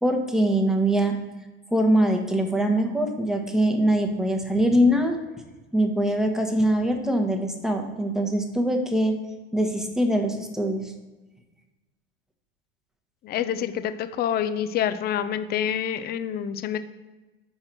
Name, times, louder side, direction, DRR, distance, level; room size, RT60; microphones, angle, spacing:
voice 1, 0.0-1.2 1.7-5.2 5.7-9.2 9.5-10.9, right 1 dB, ahead, 3 dB, 1.0 m, -23 dB
voice 2, 13.2-16.8, left 9 dB, 35° left, 11 dB, 0.5 m, -27 dB
4.8 x 4.4 x 6.0 m, 1.2 s
hypercardioid pair, 85°, 29 cm